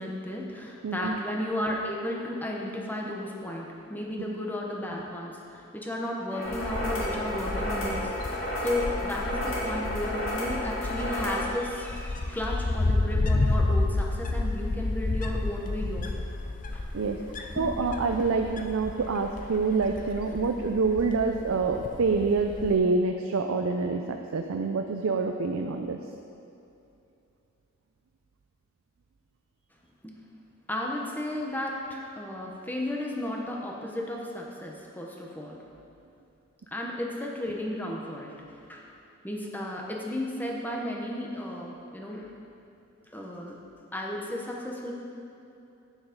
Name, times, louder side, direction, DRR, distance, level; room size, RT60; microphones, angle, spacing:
voice 1, 0.0-16.3 16.7-16.9 17.6-17.8 30.0-30.2 30.7-35.7 36.7-38.3 38.6-38.9 39.2-42.3 43.1-43.6 43.9-44.9, left 1 dB, 10° left, -1 dB, 1.0 m, -34 dB
voice 2, 0.8-1.2 16.9-17.2 17.5-26.0, right 4 dB, 90° right, 4 dB, 0.5 m, -26 dB
sound 1, 6.3-11.5, left 1 dB, 75° left, 2.4 m, -32 dB
Wind, 6.5-22.8, left 2 dB, 40° left, 0.6 m, -31 dB
9.3 x 7.1 x 5.2 m, 2.7 s
head